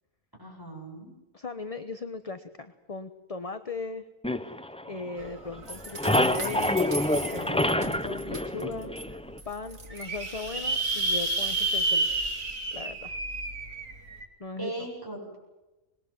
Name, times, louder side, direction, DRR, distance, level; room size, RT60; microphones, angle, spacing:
voice 1, 0.4-1.1 14.6-15.4, right 2 dB, 15° right, 0 dB, 7.7 m, -38 dB
voice 2, 1.3-4.0 4.3-6.8 7.2-9.2 9.4-12.3 12.7-13.2 14.4-14.9, left 3 dB, 30° left, 10 dB, 1.1 m, -38 dB
sound 1, 4.2-5.4 5.7-9.4, left 1 dB, 5° left, 0.5 m, -27 dB
sound 2, 5.2-5.3 5.6-7.7 8.3-8.4 8.7-8.8 9.0-9.1 9.7-14.2, right 2 dB, 70° right, 3.2 m, -31 dB
sound 3, 5.7-9.0 9.4-10.1, right 2 dB, 50° right, 3.3 m, -40 dB
26.0 x 21.0 x 7.7 m, 1.0 s
omnidirectional pair, 1.4 m